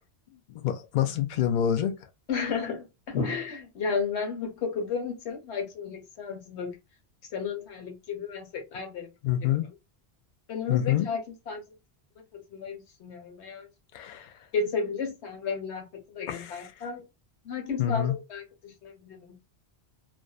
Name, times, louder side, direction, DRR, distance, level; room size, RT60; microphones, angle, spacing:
voice 1, 0.5-1.9 9.2-9.7 10.7-11.1 13.9-14.3 16.3-16.7 17.8-18.2, left 10 dB, 60° left, 0.5 m, -27 dB
voice 2, 2.3-6.8 7.3-9.1 9.4-9.6 10.5-11.2 11.5-11.6 12.3-13.7 14.5-17.0 17.4-19.4, left 5 dB, 90° left, 1.1 m, -33 dB
2.5 x 2.2 x 2.3 m
omnidirectional pair, 1.1 m